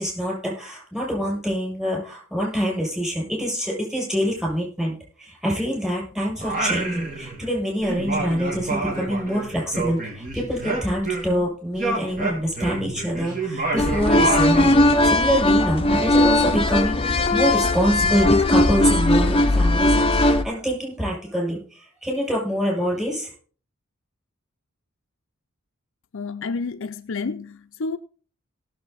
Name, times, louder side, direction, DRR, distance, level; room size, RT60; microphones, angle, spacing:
voice 1, 0.0-23.3, equal, 5° right, 7.4 m, -25 dB
Singing, 6.4-7.6 7.8-11.5 11.8-15.0, right 3 dB, 40° right, 2.8 m, -28 dB
sound 1, 13.8-20.4, left 1 dB, 25° left, 0.8 m, -18 dB
voice 2, 26.1-28.0, left 4 dB, 65° left, 0.6 m, -30 dB
18.0 x 7.5 x 4.2 m
head